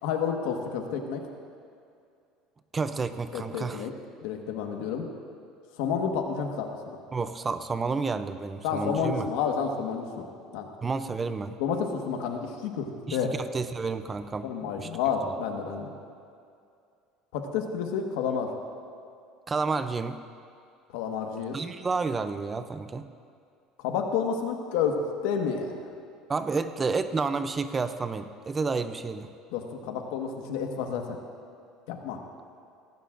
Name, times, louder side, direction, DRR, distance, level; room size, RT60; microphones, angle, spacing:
voice 1, 0.0-1.3 3.3-3.9 4.2-5.1 5.8-7.0 8.6-10.3 10.5-10.7 11.6-13.3 14.4-15.9 17.3-18.5 20.9-21.6 23.8-25.8 29.5-31.2 31.9-32.2, left 6 dB, 85° left, 3 dB, 1.4 m, -30 dB
voice 2, 2.7-3.9 7.1-9.3 10.8-11.6 13.1-14.9 19.5-20.2 21.5-23.1 26.3-29.3, right 4 dB, 20° right, 11 dB, 0.5 m, -30 dB
18.0 x 16.0 x 2.6 m, 2.4 s
cardioid pair, 140°, 0 cm